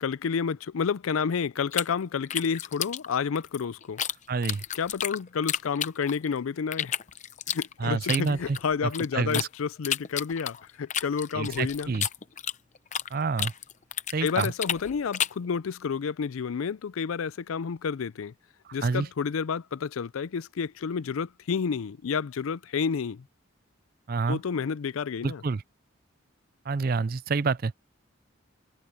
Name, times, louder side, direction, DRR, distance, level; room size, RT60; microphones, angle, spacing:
voice 1, 0.0-4.0 4.7-7.0 7.5-11.9 14.2-18.3 18.7-23.2 24.3-25.4, left 6 dB, 85° left, 0.4 m, -30 dB
sound 1, 1.7-4.1 4.4-6.3 6.7-9.5 9.8-13.1 13.4-15.5, left 9 dB, 35° left, 0.6 m, -31 dB
voice 2, 4.3-4.6 7.8-9.5 11.3-12.1 13.1-13.5 14.1-14.5 18.8-19.1 24.1-24.4 25.2-25.6 26.7-27.7, right 4 dB, 45° right, 0.4 m, -28 dB
head